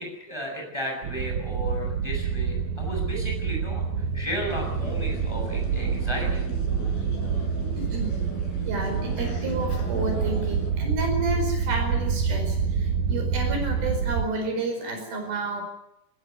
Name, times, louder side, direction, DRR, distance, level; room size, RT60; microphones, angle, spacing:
voice 1, 0.0-6.4, equal, 5° right, 1 dB, 6.9 m, -34 dB
sound 1, 1.0-14.3, right 6 dB, 65° right, 2.1 m, -27 dB
Field recording at Dresden Germany, 4.5-10.7, left 2 dB, 85° left, 6.3 m, -39 dB
voice 2, 8.6-15.6, right 3 dB, 80° right, 4 dB, 6.8 m, -31 dB
19.5 x 19.0 x 9.4 m, 0.84 s
omnidirectional pair, 4.2 m